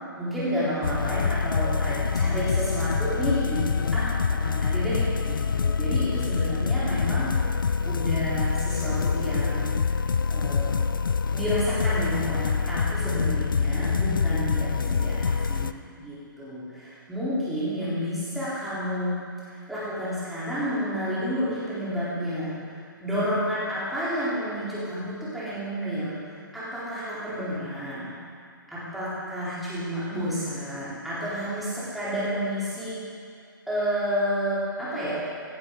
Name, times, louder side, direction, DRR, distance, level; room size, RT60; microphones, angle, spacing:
voice 1, 0.2-7.4 7.8-9.7 10.3-10.8 11.3-19.2 19.5-28.1 28.7-33.0 33.7-35.1, equal, ahead, -12 dB, 3.9 m, -30 dB
sound 1, 0.8-15.7, left 5 dB, 70° left, 0.4 m, -25 dB
16.0 x 10.5 x 3.9 m, 2.2 s
figure-of-eight pair, 125°, 12 cm